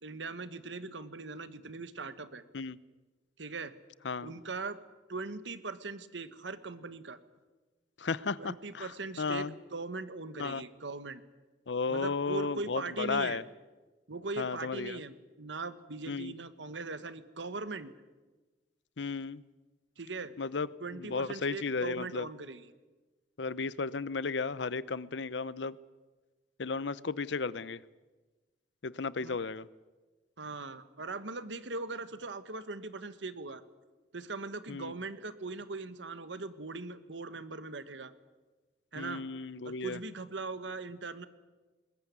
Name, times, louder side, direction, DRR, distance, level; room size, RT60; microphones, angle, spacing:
voice 1, 0.0-2.4 3.4-3.7 4.2-4.8 5.1-7.2 8.4-11.2 11.9-13.4 14.1-17.9 20.0-20.4 20.8-22.7 29.2-29.4 30.4-33.6 34.1-38.1 38.9-39.2 39.6-41.3, right 3 dB, 85° right, 13 dB, 1.4 m, -40 dB
voice 2, 8.0-9.6 10.4-10.6 11.7-13.4 14.4-15.0 16.1-16.3 19.0-19.4 20.4-20.7 20.9-22.3 23.4-25.8 26.6-27.8 28.8-29.7 34.7-34.9 38.9-40.0, left 4 dB, 80° left, 19 dB, 0.8 m, -34 dB
21.0 x 21.0 x 9.5 m, 1.2 s
head